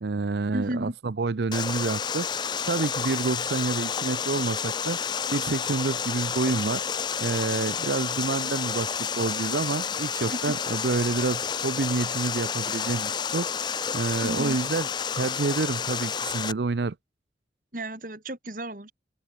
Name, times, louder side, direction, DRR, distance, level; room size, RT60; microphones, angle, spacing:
voice 1, 0.0-2.3 2.7-5.0 5.3-6.8 7.2-14.9 15.1-17.0, right 3 dB, 75° right, 0.6 m, -28 dB
voice 2, 0.5-1.0 10.3-10.5 14.2-14.6 17.7-18.9, right 1 dB, 50° right, 3.6 m, -33 dB
Water, 1.5-16.5, left 7 dB, 25° left, 0.4 m, -30 dB
head